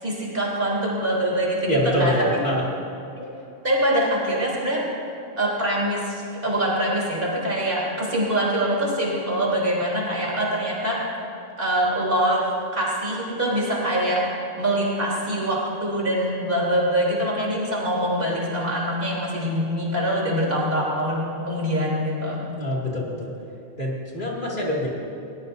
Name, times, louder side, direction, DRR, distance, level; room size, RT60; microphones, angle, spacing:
voice 1, 0.0-2.3 3.2-3.3 3.6-4.8 5.4-11.1 11.6-22.5, right 1 dB, 55° right, -5 dB, 3.8 m, -24 dB
voice 2, 1.7-2.7 22.6-23.3 23.8-24.9, equal, 50° left, -4 dB, 2.6 m, -25 dB
21.5 x 19.0 x 2.7 m, 2.8 s
omnidirectional pair, 1.1 m